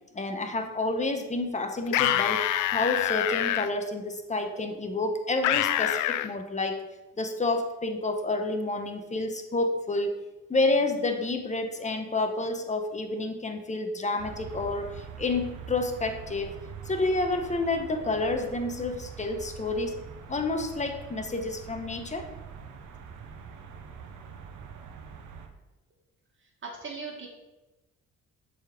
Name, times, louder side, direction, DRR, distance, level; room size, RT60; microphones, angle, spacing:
voice 1, 0.1-6.8 7.2-10.2 10.5-16.6 16.9-20.0 20.3-22.3, left 2 dB, 25° left, 5 dB, 1.0 m, -29 dB
sound 1, 1.9-3.7 5.4-6.3, left 12 dB, 80° left, 0.5 m, -26 dB
sound 2, 14.2-25.5, right 6 dB, 80° right, 0.9 m, -44 dB
voice 2, 26.6-27.3, right 4 dB, 40° right, 0 dB, 2.1 m, -38 dB
7.0 x 4.2 x 5.0 m, 1.0 s
cardioid pair, 90°, 30 cm